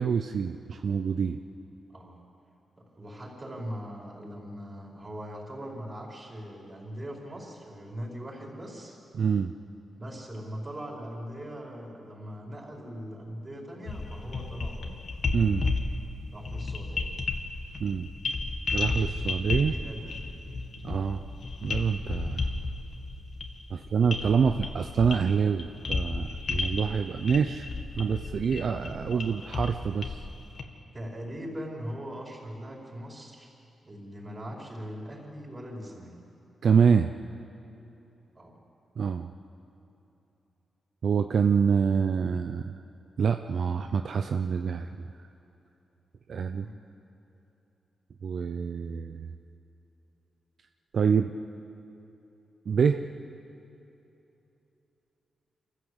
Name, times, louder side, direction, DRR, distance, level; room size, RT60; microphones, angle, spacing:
voice 1, 0.0-1.4 9.1-9.5 15.3-15.7 17.8-18.1 18.7-19.7 20.8-21.3 21.6-22.5 23.7-27.7 28.0-30.2 36.6-37.1 39.0-39.3 41.0-42.8 43.2-45.1 46.3-46.7 48.2-49.3 50.9-51.3 52.7-53.0, right 6 dB, 60° right, 7 dB, 0.7 m, -26 dB
voice 2, 1.9-2.2 2.8-9.0 10.0-14.9 16.3-17.1 19.6-20.1 21.0-21.3 29.0-29.2 30.9-33.5 33.8-36.1 38.3-38.5 46.6-46.8, equal, 25° right, -2 dB, 5.1 m, -40 dB
sound 1, 13.9-30.6, left 3 dB, 55° left, 1.8 m, -33 dB
27.5 x 15.0 x 8.0 m, 2.9 s
cardioid pair, 105°, 0 cm